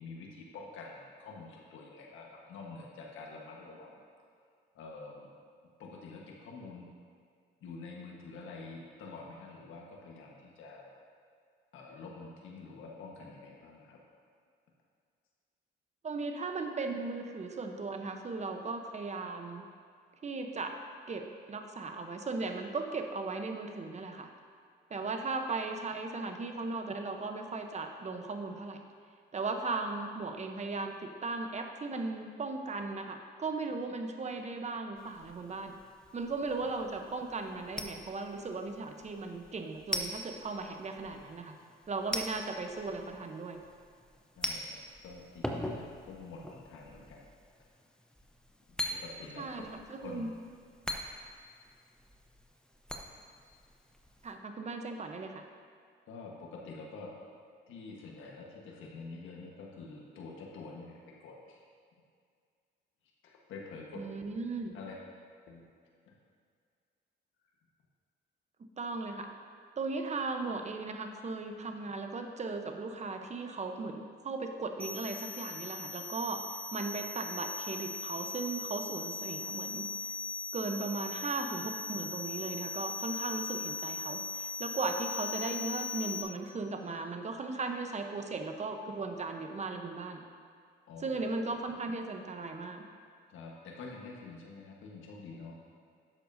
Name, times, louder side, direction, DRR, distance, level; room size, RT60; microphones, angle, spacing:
voice 1, 0.0-4.0 4.7-5.3 5.8-6.9 7.6-10.9 11.7-14.0 44.4-44.8 45.0-47.2 48.9-49.5 50.0-50.3 56.1-57.1 57.7-61.6 63.2-64.1 64.7-65.0 65.5-65.6 66.1-66.2 90.9-91.3 93.3-95.5, left 4 dB, 80° left, -2 dB, 1.4 m, -47 dB
voice 2, 16.0-19.7 20.2-20.8 21.1-24.3 24.9-28.8 29.3-35.8 36.1-41.5 41.9-43.6 49.4-50.3 54.2-55.5 63.9-64.8 68.8-69.3 69.8-76.4 76.7-79.9 80.5-90.2 91.0-92.8, right 3 dB, 35° right, 5 dB, 0.9 m, -37 dB
sound 1, 35.0-54.3, left 1 dB, 5° left, 0.7 m, -43 dB
sound 2, 74.8-86.2, left 4 dB, 25° left, 1.2 m, -39 dB
11.5 x 7.6 x 2.7 m, 2.1 s
cardioid pair, 90°, 20 cm